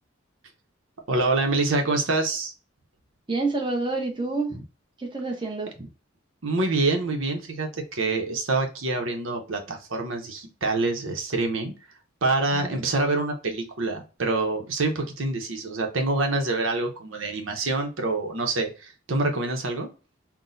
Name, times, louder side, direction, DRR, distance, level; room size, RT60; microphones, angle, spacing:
voice 1, 1.1-2.5 6.4-11.7 12.2-19.9, right 2 dB, 80° right, 0.8 m, -26 dB
voice 2, 3.3-4.6 5.0-5.9 12.5-12.9, right 3 dB, 25° right, 0.8 m, -28 dB
5.9 x 2.1 x 2.6 m
head